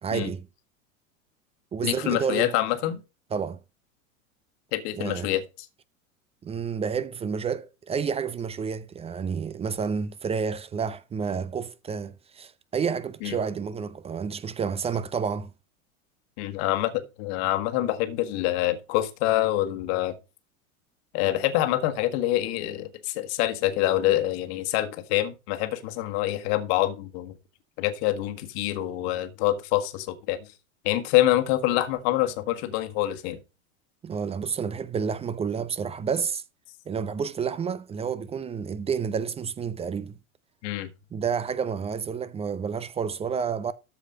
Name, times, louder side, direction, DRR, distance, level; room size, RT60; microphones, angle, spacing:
voice 1, 0.0-0.5 1.7-2.5 3.3-3.6 5.0-5.3 6.4-15.5 34.0-36.4 36.9-40.2 41.1-43.7, right 6 dB, 15° right, 0.6 m, -30 dB
voice 2, 1.8-3.0 4.7-5.4 13.2-13.4 16.4-20.1 21.1-27.3 27.8-30.4 30.8-33.4 40.6-40.9, left 14 dB, 50° left, 1.6 m, -26 dB
13.5 x 4.9 x 5.2 m
figure-of-eight pair, 90°, 41 cm